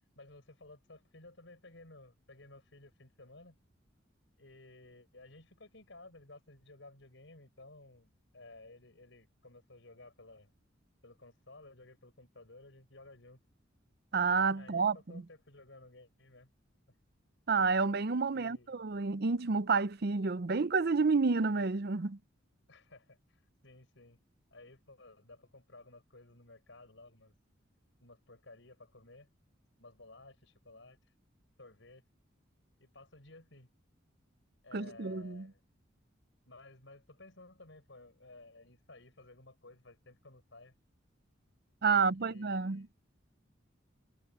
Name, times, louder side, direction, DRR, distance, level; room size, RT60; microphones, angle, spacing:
voice 1, 0.2-3.6 4.4-10.5 11.0-13.4 14.6-16.5 16.9-17.0 18.3-18.8 22.7-24.2 24.5-27.3 28.0-29.3 29.8-31.0 31.6-32.0 32.8-33.7 34.6-35.6 36.5-40.7 41.9-42.9, left 2 dB, 70° left, 6.0 m, -56 dB
voice 2, 14.1-15.0 17.5-22.2 34.7-35.5 41.8-42.8, right 4 dB, 55° right, 0.6 m, -29 dB
head